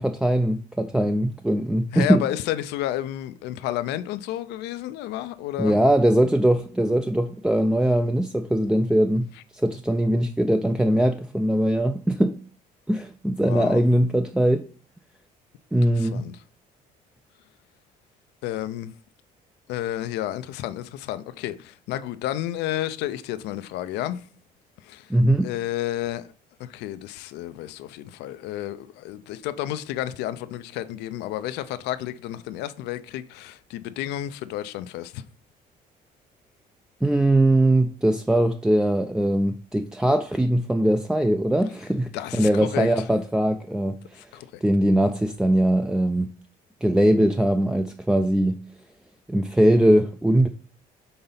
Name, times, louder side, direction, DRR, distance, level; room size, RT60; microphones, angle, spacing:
voice 1, 0.0-2.2 5.6-12.4 12.9-14.7 15.7-16.2 25.1-25.5 37.0-44.3 44.6-46.3 46.8-48.6 49.3-50.5, right 1 dB, 5° right, 0.3 m, -21 dB
voice 2, 1.9-5.8 13.4-13.8 16.0-16.4 18.4-18.9 19.7-24.2 24.8-25.1 25.4-26.3 26.6-35.2 42.1-42.9 44.2-44.6, left 13 dB, 85° left, 0.4 m, -31 dB
5.4 x 3.9 x 5.6 m
cardioid pair, 110°, 17 cm